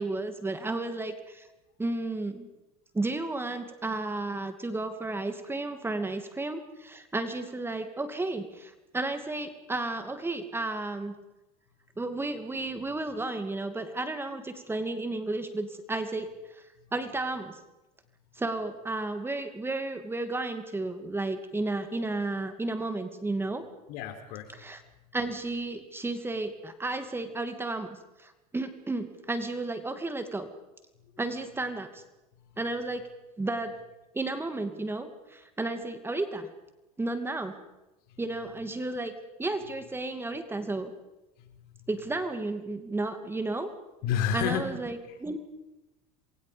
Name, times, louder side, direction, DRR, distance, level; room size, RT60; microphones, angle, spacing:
voice 1, 0.0-1.5 1.8-2.5 2.9-11.2 12.0-16.6 16.9-17.6 18.4-23.6 24.5-24.8 25.1-30.5 31.2-32.0 32.6-33.0 33.4-33.7 34.1-36.5 37.0-37.6 38.2-39.1 39.4-40.9 41.9-43.7 44.3-45.4, right 2 dB, 10° right, 8 dB, 2.5 m, -33 dB
voice 2, 23.9-24.5 32.4-32.6 38.1-38.2 41.4-41.9 44.0-44.6 45.1-45.2, left 8 dB, 60° left, 7 dB, 4.1 m, -31 dB
28.0 x 23.0 x 5.2 m, 0.99 s
hypercardioid pair, 100°, 19 cm